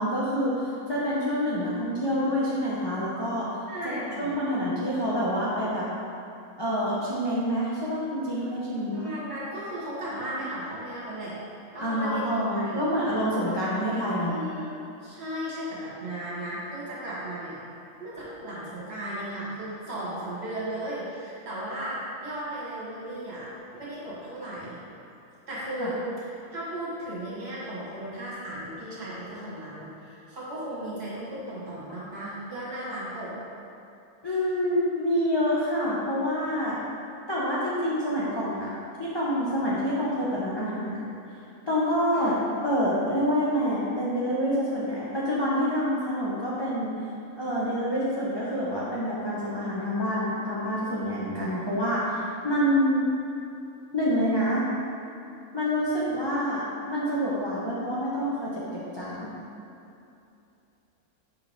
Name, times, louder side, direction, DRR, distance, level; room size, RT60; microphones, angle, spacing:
voice 1, 0.0-3.6 3.8-5.9 6.6-9.1 10.3-10.4 11.8-14.4 25.8-25.9 34.2-36.8 37.3-41.0 41.7-42.3 42.6-46.9 47.4-53.1 53.9-54.7 55.5-59.4, equal, 25° left, -9 dB, 0.5 m, -27 dB
voice 2, 3.7-4.4 8.9-11.4 11.7-12.8 13.5-13.6 14.3-14.7 15.0-17.6 18.0-24.8 25.5-26.3 26.5-33.3 34.3-34.4 42.1-42.3, right 1 dB, 45° right, -8 dB, 1.8 m, -35 dB
5.7 x 4.7 x 3.5 m, 2.7 s
omnidirectional pair, 1.5 m